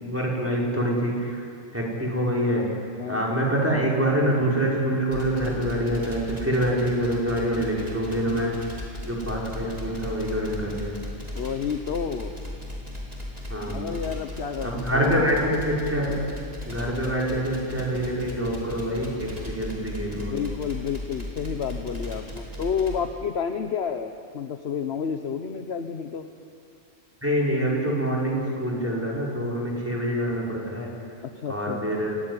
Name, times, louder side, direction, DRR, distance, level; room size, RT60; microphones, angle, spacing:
voice 1, 0.0-2.7 3.1-8.8 9.0-11.0 13.5-13.9 14.6-16.2 16.7-20.4 27.2-30.9 31.5-32.2, right 1 dB, 10° right, -4 dB, 5.6 m, -26 dB
sound 1, 5.1-23.0, left 2 dB, 35° right, 4.3 m, -37 dB
voice 2, 11.3-12.3 13.6-15.3 20.1-26.2 31.3-31.9, left 7 dB, 60° left, 6 dB, 1.2 m, -30 dB
28.5 x 15.0 x 9.9 m, 2.5 s
omnidirectional pair, 1.2 m